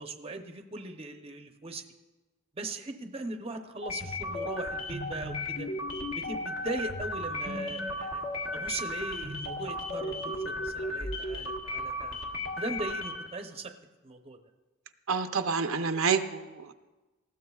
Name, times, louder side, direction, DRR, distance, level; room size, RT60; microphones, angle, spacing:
voice 1, 0.0-1.8 2.6-5.7 6.1-8.2 8.5-12.2 12.6-13.7 14.0-14.4, right 2 dB, 25° right, 5 dB, 0.7 m, -39 dB
sound 1, 3.8-13.4, left 1 dB, 60° left, 1.5 m, -35 dB
voice 2, 15.1-16.7, right 5 dB, 65° right, 7 dB, 0.6 m, -28 dB
19.5 x 15.0 x 2.3 m, 1.2 s
head